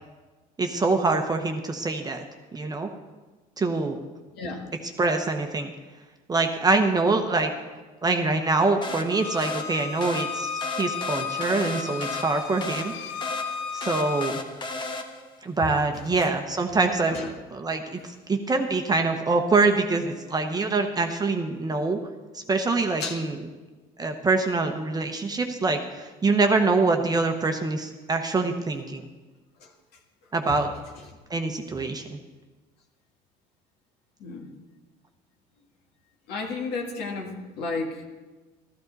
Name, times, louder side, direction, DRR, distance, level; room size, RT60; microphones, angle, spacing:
voice 1, 0.6-2.2 2.5-2.9 3.6-4.0 5.0-5.7 6.3-7.5 8.0-12.9 13.7-14.4 15.4-17.2 17.5-18.0 18.3-22.0 22.3-23.4 24.0-29.0 30.3-30.7 31.3-32.2, right 3 dB, 20° right, 5 dB, 0.9 m, -24 dB
sound 1, 8.8-15.4, left 2 dB, 25° left, 1.3 m, -35 dB
Bowed string instrument, 9.1-14.3, left 6 dB, 85° left, 0.8 m, -34 dB
voice 2, 15.9-16.3 16.7-16.8 17.1-17.3 23.0-23.2 29.6-29.7 31.7-31.8 34.2-34.6 36.3-38.1, left 3 dB, 65° left, 1 dB, 1.9 m, -33 dB
13.5 x 12.5 x 4.0 m, 1.3 s
supercardioid pair, 105°, 18 cm